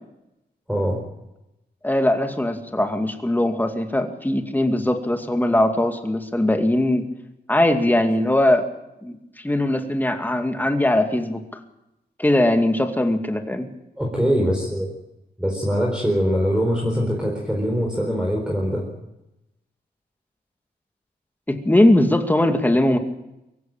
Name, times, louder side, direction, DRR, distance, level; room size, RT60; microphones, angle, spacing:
voice 1, 0.7-1.0 14.0-14.9 15.4-18.9, equal, 5° right, 0 dB, 4.3 m, -22 dB
voice 2, 1.8-7.1 7.5-8.7 9.0-9.2 9.4-11.6 12.2-13.7 21.5-23.0, left 1 dB, 10° left, 5 dB, 2.3 m, -20 dB
23.5 x 16.0 x 8.9 m, 0.92 s
wide cardioid pair, 115°, 17 cm